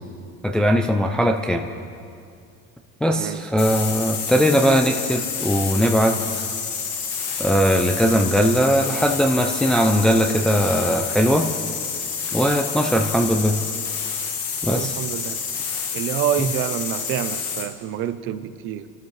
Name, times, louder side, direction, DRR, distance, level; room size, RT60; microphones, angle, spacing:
voice 1, 0.4-1.6 3.0-6.4 7.4-11.5 12.3-13.6 14.6-14.9, equal, 5° left, 3 dB, 0.3 m, -20 dB
sound 1, 3.6-17.7, left 6 dB, 70° left, 2.0 m, -28 dB
voice 2, 14.6-15.4 15.9-18.9, right 10 dB, 45° right, 12 dB, 0.6 m, -27 dB
29.5 x 13.0 x 3.2 m, 2.4 s
cardioid pair, 170°, 30 cm